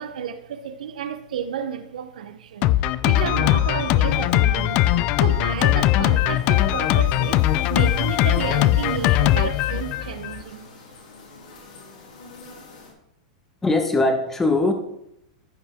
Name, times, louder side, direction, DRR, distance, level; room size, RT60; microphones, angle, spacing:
voice 1, 0.0-2.7 3.0-4.8 5.2-10.7, right 8 dB, 90° right, 0.8 m, -31 dB
Drum kit, 2.6-10.4, left 14 dB, 30° left, 0.3 m, -20 dB
sound 1, 3.8-12.9, left 3 dB, 90° left, 3.2 m, -47 dB
voice 2, 13.6-14.7, left 2 dB, 10° left, 1.1 m, -20 dB
14.5 x 5.5 x 3.6 m
supercardioid pair, 165°, 4 cm